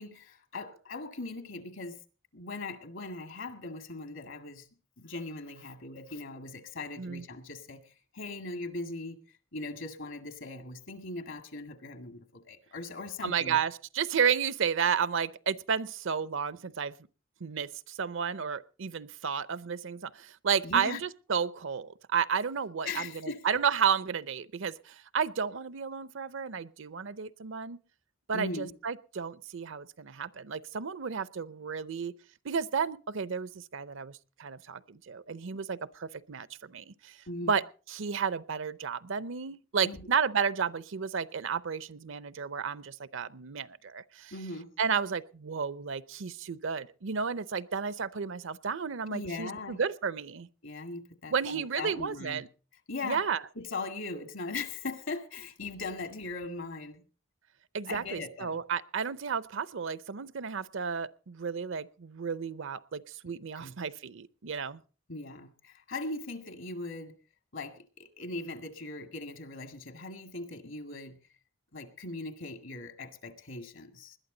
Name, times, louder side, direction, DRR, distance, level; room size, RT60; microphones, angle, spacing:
voice 1, 0.0-2.0 2.3-4.7 5.0-9.2 9.5-13.6 20.6-21.0 22.9-23.6 28.3-28.7 37.3-37.6 39.8-40.1 44.3-44.7 49.1-49.8 50.6-52.4 52.9-53.2 53.6-57.0 57.9-58.6 63.6-63.8 65.1-67.1 67.5-71.2 71.7-74.2, left 3 dB, 70° left, 2.0 m, -39 dB
voice 2, 13.2-16.9 17.4-27.8 28.3-32.1 32.4-37.2 37.4-37.6 37.9-44.3 44.8-50.5 51.3-52.5 53.0-53.4 57.7-64.8, right 6 dB, 65° right, 0.6 m, -32 dB
21.0 x 12.0 x 3.9 m
head